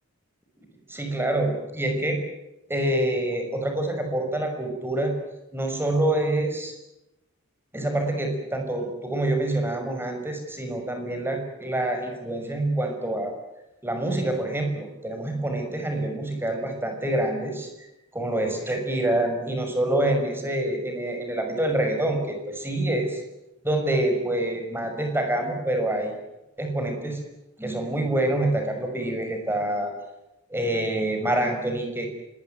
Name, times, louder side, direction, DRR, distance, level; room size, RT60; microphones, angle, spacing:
voice 1, 0.9-2.2 2.7-5.1 5.5-6.7 7.7-13.3 13.8-17.9 18.1-23.2 23.6-26.2 26.6-27.2 27.6-29.9 30.5-32.1, right 1 dB, 10° right, 5 dB, 6.0 m, -26 dB
26.0 x 21.0 x 9.4 m, 0.93 s
head